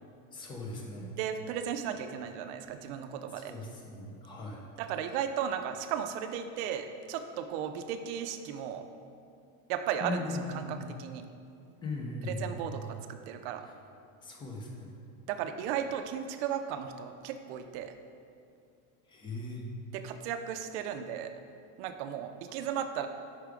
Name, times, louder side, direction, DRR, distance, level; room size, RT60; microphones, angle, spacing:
voice 1, 0.3-1.1 3.5-4.6 10.0-10.8 11.8-12.7 14.2-14.9 19.1-19.6, left 2 dB, 10° left, -1 dB, 0.4 m, -38 dB
voice 2, 1.2-3.6 4.8-8.9 9.7-11.2 12.2-13.7 15.3-17.9 19.9-21.3 21.8-23.1, right 8 dB, 55° right, 8 dB, 0.5 m, -35 dB
5.8 x 4.6 x 5.0 m, 2.4 s
supercardioid pair, 165°, 43 cm